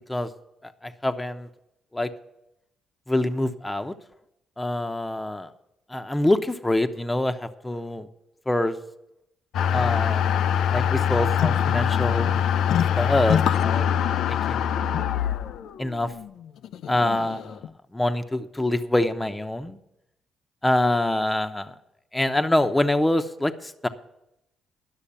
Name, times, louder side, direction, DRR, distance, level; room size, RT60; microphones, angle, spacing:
voice 1, 0.6-1.5 1.9-2.1 3.1-3.9 4.6-5.5 5.9-8.1 8.5-8.8 9.7-10.2 10.7-12.4 13.0-13.9 14.3-14.7 15.8-16.1 16.9-19.8 20.6-21.7 22.1-23.9, left 1 dB, 10° left, 8 dB, 0.9 m, -25 dB
sound 1, 9.5-17.7, left 9 dB, 80° left, 0.5 m, -23 dB
11.5 x 6.5 x 8.6 m, 0.85 s
cardioid pair, 90°, 0 cm